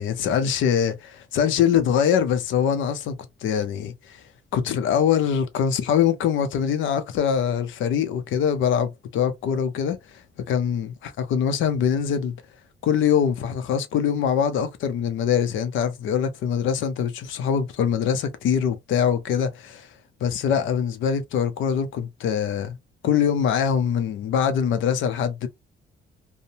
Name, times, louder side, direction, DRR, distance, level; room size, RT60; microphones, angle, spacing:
voice 1, 0.0-4.2 4.5-10.2 10.5-12.4 12.8-19.9 20.2-22.8 23.0-25.5, left 8 dB, 80° left, 0.6 m, -23 dB
2.6 x 2.1 x 2.7 m
cardioid pair, 90°, 20 cm